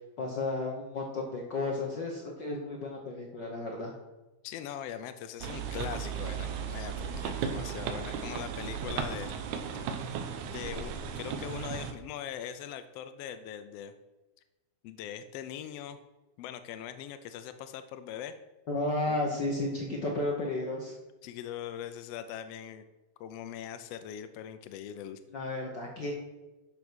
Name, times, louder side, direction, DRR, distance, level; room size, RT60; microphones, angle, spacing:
voice 1, 0.2-3.9 18.7-20.9 25.3-26.1, left 2 dB, 60° left, 0 dB, 1.2 m, -33 dB
voice 2, 4.4-9.3 10.4-13.9 14.8-16.0 16.4-18.3 19.1-19.2 21.2-22.8 23.2-25.2, left 10 dB, 80° left, 9 dB, 1.4 m, -41 dB
sound 1, 5.4-11.9, right 7 dB, 80° right, 2.2 m, -35 dB
10.5 x 6.1 x 6.2 m, 1.1 s
omnidirectional pair, 3.4 m